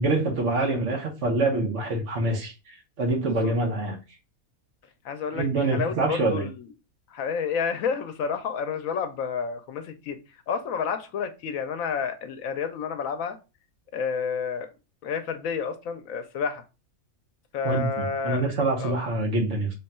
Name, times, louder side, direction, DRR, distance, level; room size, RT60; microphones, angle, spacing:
voice 1, 0.0-2.5 3.0-4.0 5.3-6.5 17.6-19.7, right 2 dB, 60° right, 1.3 m, -25 dB
voice 2, 5.0-6.7 7.1-10.2 10.5-13.4 13.9-14.7 15.0-16.6 17.5-18.4 18.8-18.9, left 6 dB, 75° left, 1.0 m, -30 dB
3.7 x 2.2 x 4.1 m
omnidirectional pair, 1.5 m